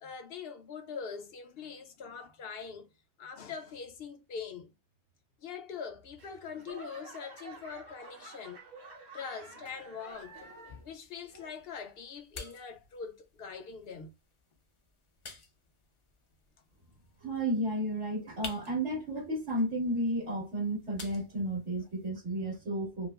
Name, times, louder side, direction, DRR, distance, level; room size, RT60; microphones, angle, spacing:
voice 1, 0.0-2.9 3.2-4.7 5.4-8.6 9.1-10.5 10.8-14.1, left 6 dB, 60° left, 0.9 m, -43 dB
Laughter / Clapping / Crowd, 6.2-11.0 11.3-11.8 12.4-12.5, right 3 dB, 40° right, 0.9 m, -50 dB
sound 1, 10.1-22.1, left 3 dB, 35° left, 0.5 m, -52 dB
voice 2, 17.2-23.1, right 1 dB, 75° right, 1.9 m, -32 dB
4.9 x 2.1 x 2.3 m
omnidirectional pair, 1.2 m